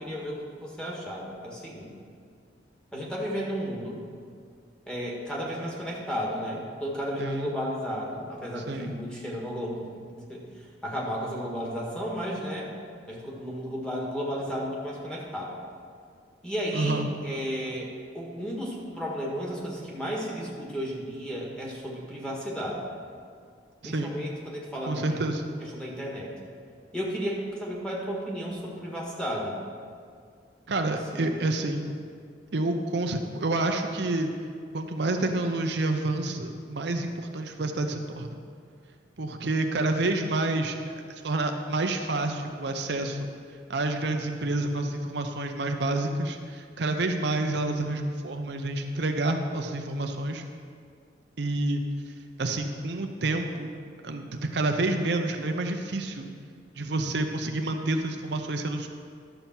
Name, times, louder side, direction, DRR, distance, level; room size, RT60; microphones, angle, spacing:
voice 1, 0.0-1.9 2.9-4.0 4.9-9.9 10.3-12.7 13.1-15.5 16.4-22.9 23.8-25.2 25.6-26.3 26.9-29.5 30.9-31.4, equal, 5° left, -3 dB, 1.5 m, -33 dB
voice 2, 7.2-7.5 8.6-8.9 16.7-17.1 23.8-24.1 24.9-25.4 30.7-31.9 32.5-34.3 34.7-38.4 39.2-40.8 41.1-43.3 43.7-50.4 51.4-51.8 52.4-53.7 54.0-56.3 56.7-58.9, right 2 dB, 65° right, 5 dB, 0.6 m, -28 dB
11.5 x 6.9 x 4.4 m, 2.2 s
head